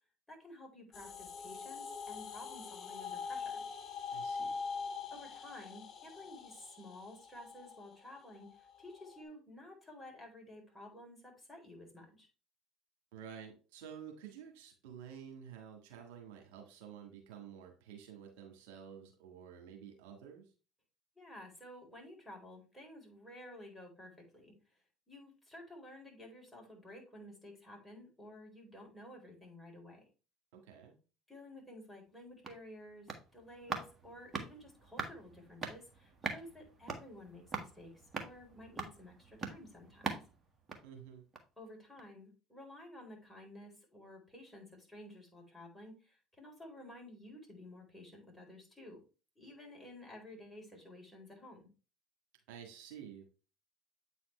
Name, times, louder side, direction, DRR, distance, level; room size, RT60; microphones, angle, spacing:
voice 1, 0.3-3.6 5.1-12.3 21.2-30.1 31.3-40.3 41.6-49.0 49.4-51.7, left 1 dB, 5° left, -2 dB, 4.0 m, -53 dB
sound 1, 0.9-9.2, left 5 dB, 45° left, 2.1 m, -43 dB
voice 2, 4.1-4.6 13.1-20.5 30.5-30.9 40.8-41.2 52.5-53.3, right 8 dB, 75° right, 3 dB, 1.6 m, -51 dB
sound 2, 32.1-41.6 42.0-42.1, right 4 dB, 35° right, 1.6 m, -44 dB
8.5 x 4.2 x 3.1 m, 0.33 s
hypercardioid pair, 70°, 0 cm